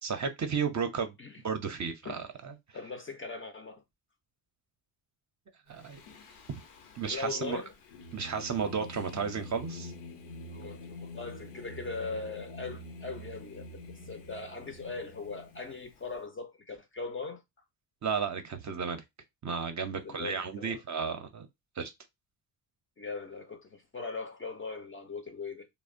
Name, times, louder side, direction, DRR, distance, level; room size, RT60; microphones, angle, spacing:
voice 1, 0.0-1.2 1.4-2.5 5.7-6.0 7.0-7.6 8.1-9.9 18.0-19.0 19.4-21.5 21.8-21.9, right 6 dB, 35° right, 0.6 m, -33 dB
voice 2, 2.7-3.8 7.1-7.7 10.5-17.4 20.0-20.8 23.0-25.7, left 4 dB, 25° left, 0.4 m, -40 dB
Singing, 5.8-16.2, left 1 dB, 85° left, 0.7 m, -46 dB
2.7 x 2.0 x 2.5 m
supercardioid pair, 65°, 49 cm